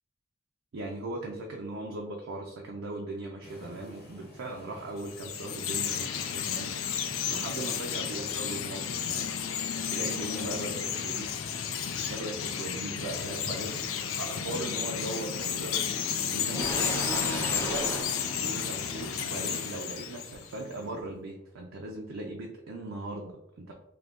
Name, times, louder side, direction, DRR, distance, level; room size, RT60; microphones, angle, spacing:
voice 1, 0.7-6.7 7.3-9.4 9.9-11.3 12.1-13.9 14.2-15.8 16.3-17.9 18.4-23.7, right 2 dB, 70° right, 0 dB, 0.4 m, -39 dB
sound 1, 3.4-21.0, left 1 dB, 50° left, 0.9 m, -53 dB
Chirp tweet, 5.0-20.6, left 8 dB, 80° left, 0.4 m, -32 dB
sound 2, 16.5-19.3, left 1 dB, 10° left, 0.5 m, -35 dB
2.7 x 2.5 x 3.5 m, 0.81 s
head